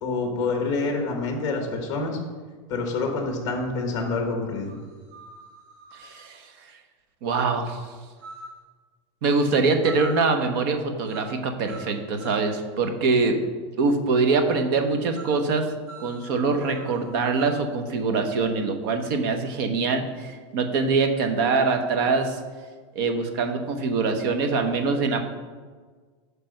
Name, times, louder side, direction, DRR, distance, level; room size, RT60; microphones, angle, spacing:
voice 1, 0.0-2.2 2.7-4.7, left 3 dB, 25° left, 2 dB, 1.1 m, -27 dB
sound 1, 3.6-3.7 4.6-6.2 8.2-8.6 9.8-10.4 11.1-11.4 11.7-12.6 15.2-15.4 15.9-17.7, right 1 dB, 25° right, 1.1 m, -43 dB
voice 2, 6.0-6.4 7.2-7.8 9.2-13.4 13.8-15.6 16.0-22.4 22.9-25.2, right 4 dB, 50° right, 6 dB, 0.9 m, -24 dB
8.8 x 3.4 x 6.4 m, 1.5 s
supercardioid pair, 180°, 15 cm